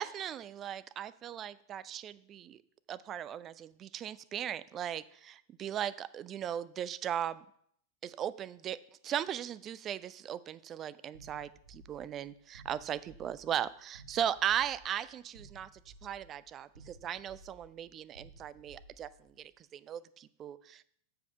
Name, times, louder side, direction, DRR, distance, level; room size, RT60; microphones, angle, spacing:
voice 1, 0.0-2.6 2.9-7.4 8.0-8.8 9.0-15.7 16.0-19.1 19.4-20.8, right 10 dB, 30° right, 17 dB, 0.3 m, -37 dB
sound 1, 11.1-19.4, right 2 dB, 70° right, 0.8 m, -57 dB
7.7 x 4.9 x 5.4 m, 0.66 s
figure-of-eight pair, 90°, 0 cm